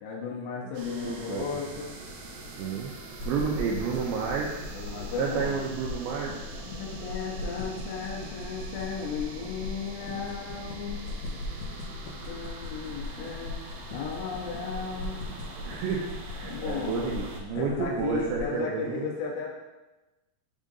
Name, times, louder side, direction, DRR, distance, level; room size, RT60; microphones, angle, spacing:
voice 1, 0.0-1.9 4.7-5.6 6.6-11.1 12.2-13.6 13.9-15.2 16.4-17.1 17.5-19.5, left 6 dB, 90° left, -2 dB, 3.0 m, -35 dB
sound 1, 0.7-17.4, right 2 dB, 70° right, 2.4 m, -44 dB
voice 2, 0.8-1.6 2.6-2.9 3.3-4.5 5.2-6.3 15.6-19.1, right 6 dB, 90° right, -3 dB, 2.8 m, -31 dB
sound 2, 3.1-18.5, left 2 dB, 60° left, 2.5 m, -39 dB
7.5 x 3.6 x 3.9 m, 1.1 s
omnidirectional pair, 4.9 m